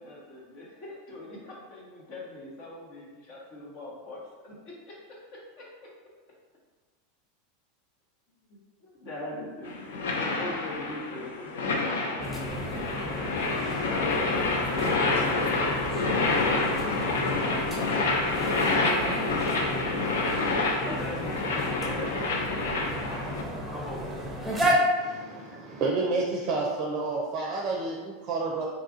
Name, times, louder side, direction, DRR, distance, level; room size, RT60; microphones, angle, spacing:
voice 1, 0.0-5.0 5.6-5.7 8.5-8.6 9.0-12.1 18.8-19.2 20.6-21.1 21.6-22.1 25.1-25.3, left 1 dB, 55° left, -3 dB, 1.0 m, -42 dB
sound 1, 9.7-23.4, left 3 dB, 75° left, 0.4 m, -28 dB
sound 2, 12.2-24.8, equal, 5° right, 0.8 m, -33 dB
voice 2, 20.8-22.4 23.6-24.5, left 2 dB, 25° left, -3 dB, 0.9 m, -41 dB
voice 3, 25.0-28.7, right 3 dB, 45° right, -2 dB, 0.5 m, -30 dB
3.8 x 2.3 x 2.6 m, 1.4 s
hypercardioid pair, 90°, 0 cm